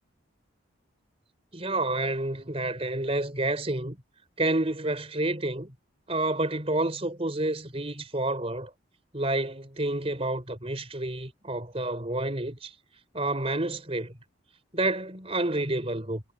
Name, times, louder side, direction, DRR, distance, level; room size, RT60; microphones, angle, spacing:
voice 1, 1.5-4.0 4.4-5.7 6.1-8.7 9.1-12.7 13.1-14.1 14.7-16.2, right 2 dB, 30° right, 4.4 m, -29 dB
head